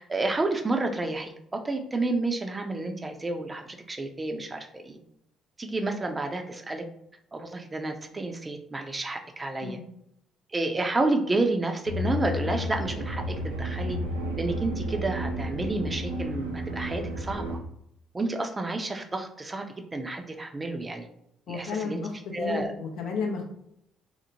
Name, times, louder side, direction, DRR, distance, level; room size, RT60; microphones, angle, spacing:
voice 1, 0.0-5.0 5.6-6.8 7.3-9.8 10.5-14.0 14.4-17.6 18.1-21.1 21.5-22.0 22.3-22.7, right 2 dB, 25° right, 4 dB, 0.5 m, -30 dB
sound 1, 11.9-17.6, equal, 90° right, 0.4 m, -32 dB
voice 2, 21.5-22.1 22.4-23.4, left 5 dB, 65° left, 2 dB, 0.5 m, -32 dB
2.9 x 2.0 x 2.7 m, 0.76 s
hypercardioid pair, 50°, 0 cm